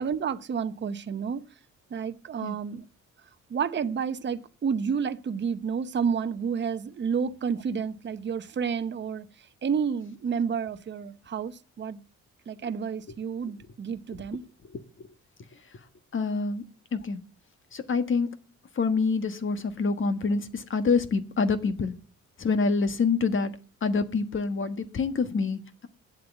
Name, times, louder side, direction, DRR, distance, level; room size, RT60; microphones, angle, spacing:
voice 1, 0.0-1.4 1.9-2.8 3.5-12.0 12.5-14.5, right 6 dB, 35° right, 0.8 m, -30 dB
voice 2, 14.7-15.1 16.1-16.6 16.9-17.2 17.7-18.3 18.7-21.9 22.4-23.5 23.8-25.9, left 4 dB, 40° left, 1.4 m, -26 dB
9.5 x 7.7 x 8.1 m
cardioid pair, 90°, 30 cm